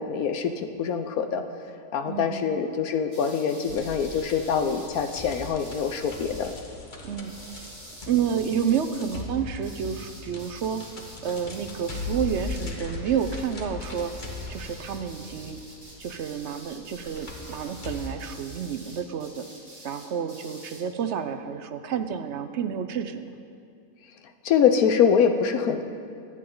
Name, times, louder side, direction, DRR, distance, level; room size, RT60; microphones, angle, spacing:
voice 1, 0.0-1.4 1.9-6.5 24.4-25.8, left 7 dB, 80° left, 7 dB, 1.3 m, -24 dB
voice 2, 2.1-2.5 7.0-7.7 8.1-10.8 11.2-14.1 14.5-15.6 16.0-19.4 19.8-23.3, right 8 dB, 60° right, 9 dB, 0.9 m, -30 dB
sound 1, 3.1-6.6 7.2-9.2 9.6-12.8 13.1-13.5 13.8-20.8, right 1 dB, 25° right, 2.3 m, -47 dB
sound 2, 3.7-18.1, left 3 dB, 35° left, 1.3 m, -39 dB
23.0 x 9.2 x 3.9 m, 2.4 s
omnidirectional pair, 1.5 m